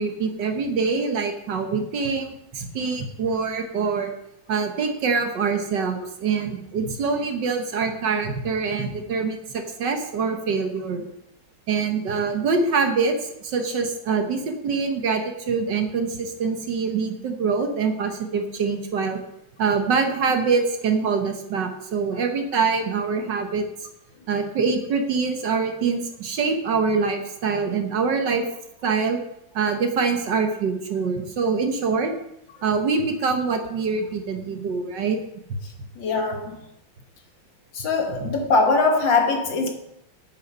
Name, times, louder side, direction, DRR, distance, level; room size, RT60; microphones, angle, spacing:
voice 1, 0.0-4.1 4.5-11.0 11.7-13.1 13.4-19.2 19.6-23.6 24.3-28.4 28.8-29.2 29.5-32.1 32.6-35.2 38.2-38.3, right 5 dB, 60° right, 1.6 m, -24 dB
voice 2, 36.0-36.6 37.7-39.7, left 3 dB, 65° left, 2.1 m, -21 dB
9.2 x 7.8 x 5.4 m
omnidirectional pair, 2.3 m